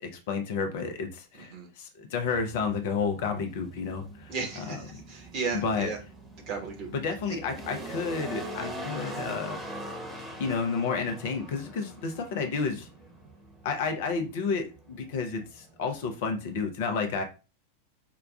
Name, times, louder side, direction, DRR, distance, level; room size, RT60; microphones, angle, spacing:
voice 1, 0.0-4.3 4.7-4.8 5.5-5.9 6.9-9.6 10.4-12.9 13.6-17.2, left 5 dB, 50° left, 5 dB, 0.6 m, -31 dB
voice 2, 1.3-1.7 4.3-6.0 6.5-6.9, right 4 dB, 40° right, 2 dB, 1.2 m, -34 dB
sound 1, 2.2-16.7, right 1 dB, 10° right, 1.1 m, -42 dB
4.7 x 2.3 x 2.4 m, 0.31 s
figure-of-eight pair, 90°, 0 cm